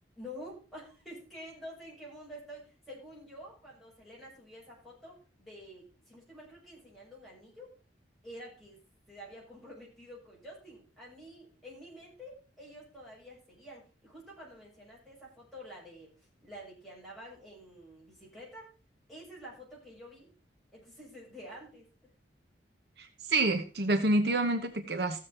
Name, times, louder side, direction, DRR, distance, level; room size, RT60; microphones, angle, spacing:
voice 1, 0.2-7.7 8.2-8.8 9.1-16.1 16.4-18.7 19.1-20.3 20.7-21.9, equal, ahead, -6 dB, 7.1 m, -49 dB
voice 2, 23.0-25.3, right 2 dB, 65° right, 7 dB, 1.1 m, -28 dB
15.5 x 7.4 x 4.4 m, 0.35 s
head